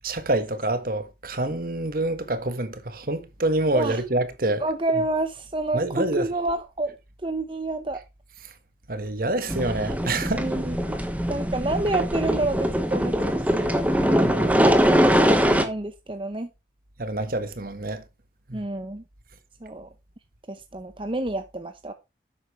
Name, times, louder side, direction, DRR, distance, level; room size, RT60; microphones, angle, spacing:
voice 1, 0.0-4.6 5.7-6.2 8.9-10.5 14.2-14.6 15.0-15.3 17.0-18.0 18.5-18.6, right 2 dB, 50° right, 1.4 m, -27 dB
voice 2, 4.6-7.0 7.2-8.0 10.3-10.9 11.3-13.8 14.1-14.8 15.1-16.5 18.5-19.0 19.6-19.9 20.5-21.9, right 2 dB, 30° right, 0.8 m, -29 dB
sound 1, 9.5-15.6, equal, 10° right, 1.2 m, -22 dB
11.5 x 8.2 x 3.2 m
head